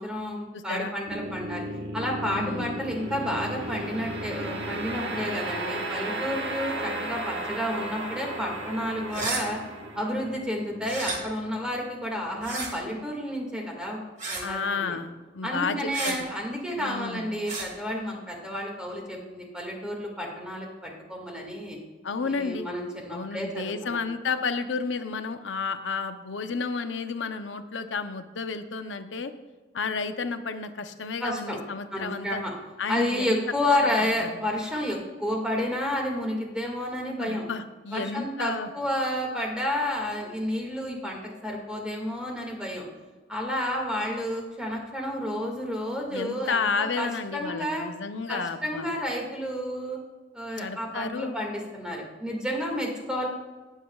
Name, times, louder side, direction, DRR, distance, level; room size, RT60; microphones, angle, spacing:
voice 1, 0.0-1.7 1.9-9.6 9.9-14.0 14.3-15.0 15.4-21.8 22.2-24.1 31.2-31.6 31.9-32.5 32.9-37.5 37.9-42.9 43.3-47.9 48.3-50.0 50.3-53.3, left 1 dB, 5° right, 0 dB, 1.9 m, -31 dB
voice 2, 0.5-0.9 2.2-2.7 14.4-16.3 16.7-17.3 22.0-22.7 23.1-29.3 29.7-32.4 32.8-33.4 34.0-34.3 37.2-38.7 46.1-48.9 50.5-51.3, left 4 dB, 85° left, 9 dB, 0.7 m, -32 dB
sound 1, 1.1-12.3, right 1 dB, 75° right, 1.3 m, -34 dB
sound 2, 9.1-9.4 10.8-11.2 12.4-12.7 14.2-14.5 15.9-16.2 17.4-17.7, right 3 dB, 45° right, 1.8 m, -31 dB
18.0 x 7.4 x 2.3 m, 1.3 s
head